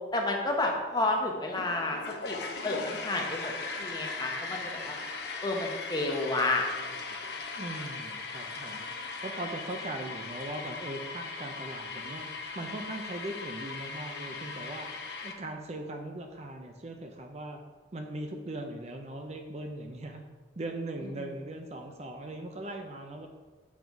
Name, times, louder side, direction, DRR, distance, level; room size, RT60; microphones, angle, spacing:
voice 1, 0.1-2.0 2.2-3.5 3.8-5.0 5.4-6.9 7.2-7.4 21.0-21.3, left 2 dB, 20° left, 1 dB, 0.8 m, -31 dB
sound 1, 1.5-15.3, left 4 dB, 65° left, 0.7 m, -39 dB
voice 2, 7.6-8.9 9.2-12.3 12.5-14.9 15.2-17.6 17.9-20.2 20.6-23.3, right 1 dB, 35° right, 4 dB, 0.5 m, -39 dB
7.2 x 3.9 x 4.5 m, 1.4 s
head